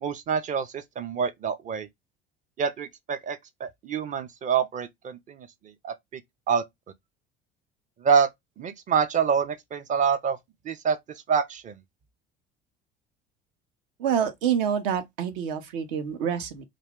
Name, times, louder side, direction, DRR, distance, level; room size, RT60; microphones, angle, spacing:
voice 1, 0.0-1.9 2.6-5.5 5.8-5.9 6.5-6.6 8.0-8.3 8.6-10.4 10.6-11.0 11.3-11.8, right 6 dB, 25° right, 0.5 m, -26 dB
voice 2, 14.0-16.7, right 8 dB, 65° right, 0.7 m, -27 dB
2.5 x 2.2 x 3.4 m
figure-of-eight pair, 60°, 30 cm